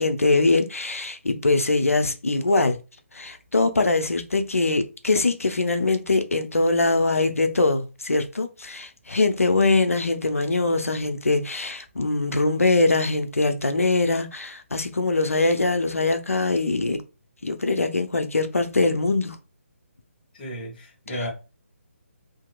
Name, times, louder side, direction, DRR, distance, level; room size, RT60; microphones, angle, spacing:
voice 1, 0.0-2.8 3.1-17.0 17.4-19.4, left 3 dB, 80° left, 0.5 m, -22 dB
voice 2, 20.3-21.3, equal, 40° left, 1.0 m, -33 dB
2.7 x 2.6 x 2.3 m
figure-of-eight pair, 145°, 8 cm